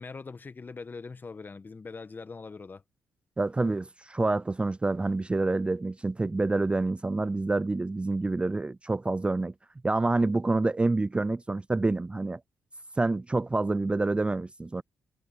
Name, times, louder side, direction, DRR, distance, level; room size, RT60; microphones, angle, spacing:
voice 1, 0.0-2.8, left 4 dB, 35° left, 1.6 m, -42 dB
voice 2, 3.4-9.5 9.8-12.4 13.0-14.8, right 2 dB, 20° right, 0.4 m, -27 dB
supercardioid pair, 55°, 5 cm